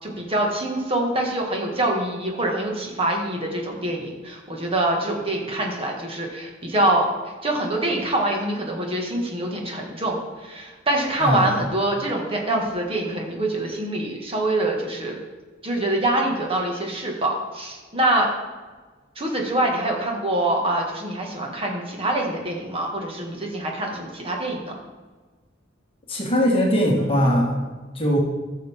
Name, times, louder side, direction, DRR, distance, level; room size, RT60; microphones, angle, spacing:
voice 1, 0.0-7.1 7.4-15.2 15.6-18.3 19.2-24.8, right 1 dB, 30° right, 0 dB, 1.8 m, -25 dB
voice 2, 11.2-11.6 26.1-27.6 27.9-28.2, equal, 30° left, -1 dB, 1.6 m, -20 dB
14.5 x 6.5 x 3.6 m, 1.3 s
head